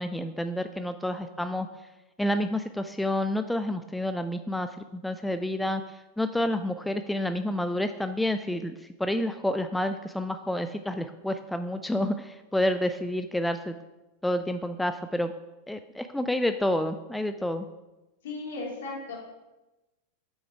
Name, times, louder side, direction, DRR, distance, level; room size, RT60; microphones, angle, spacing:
voice 1, 0.0-1.7 2.2-13.7 14.2-15.3 15.7-17.7, left 1 dB, 5° left, 9 dB, 0.3 m, -29 dB
voice 2, 18.2-19.2, left 3 dB, 60° left, -3 dB, 2.7 m, -35 dB
7.5 x 6.3 x 4.6 m, 1.0 s
figure-of-eight pair, 90°, 0 cm